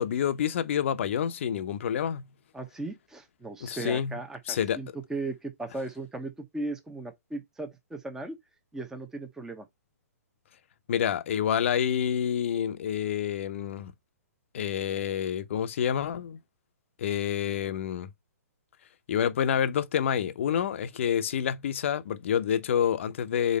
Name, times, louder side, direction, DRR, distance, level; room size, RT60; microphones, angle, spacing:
voice 1, 0.0-2.3 3.6-4.2 4.5-4.8 10.9-13.9 14.5-16.4 17.0-18.1 19.1-23.6, left 8 dB, 50° left, 0.8 m, -28 dB
voice 2, 2.5-8.4 8.7-9.7, right 2 dB, 5° right, 1.0 m, -37 dB
5.3 x 4.1 x 4.3 m
figure-of-eight pair, 120°, 9 cm